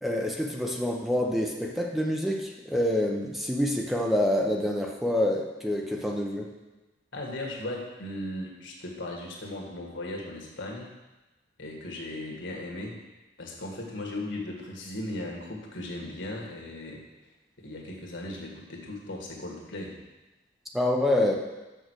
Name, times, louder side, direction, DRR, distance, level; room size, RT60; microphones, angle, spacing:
voice 1, 0.0-6.5 20.7-21.4, left 1 dB, ahead, 0 dB, 0.7 m, -27 dB
voice 2, 7.1-10.9 11.6-13.0 13.4-17.0 17.6-20.0, left 1 dB, 85° left, 0 dB, 1.9 m, -37 dB
6.5 x 6.5 x 6.3 m, 1.1 s
head